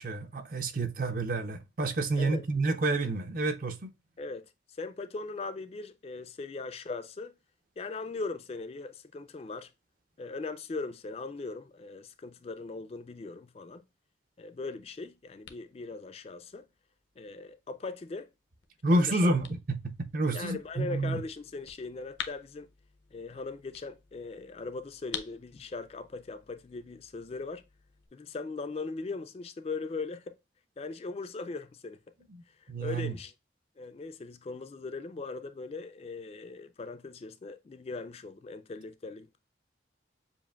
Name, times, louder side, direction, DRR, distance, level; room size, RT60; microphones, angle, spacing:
voice 1, 0.0-3.9 18.8-21.2 32.3-32.4 32.7-33.1, right 2 dB, 50° right, 0.5 m, -29 dB
voice 2, 4.2-7.4 7.8-9.7 10.2-13.8 14.4-16.7 17.2-18.3 18.9-19.3 20.3-22.7 23.1-27.6 28.1-30.4 30.8-32.0 32.5-33.3 33.8-39.3, left 3 dB, 35° left, 0.3 m, -39 dB
sound 1, 14.6-28.1, left 8 dB, 75° left, 0.6 m, -49 dB
7.2 x 2.5 x 2.3 m
head